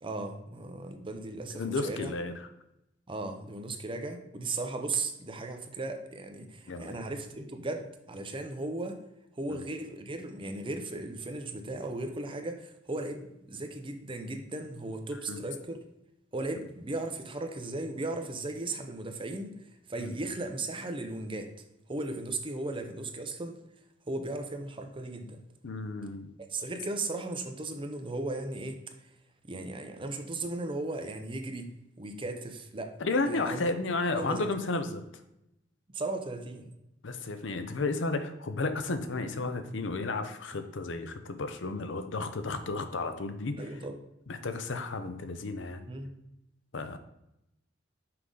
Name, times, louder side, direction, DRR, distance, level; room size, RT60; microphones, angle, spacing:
voice 1, 0.0-2.1 3.1-9.0 9.4-15.8 16.3-21.5 21.9-23.6 24.1-25.4 26.5-29.1 29.4-31.7 32.0-33.0 33.3-34.5 35.9-36.7 43.6-44.0 45.9-46.1, right 2 dB, 25° right, 6 dB, 0.7 m, -36 dB
voice 2, 1.6-2.3 6.7-6.9 9.5-9.6 15.3-15.4 20.0-20.1 25.6-26.3 33.0-35.0 37.0-43.5 44.3-45.9 46.7-47.0, left 3 dB, 70° left, 8 dB, 0.7 m, -32 dB
5.9 x 4.8 x 3.8 m, 0.85 s
head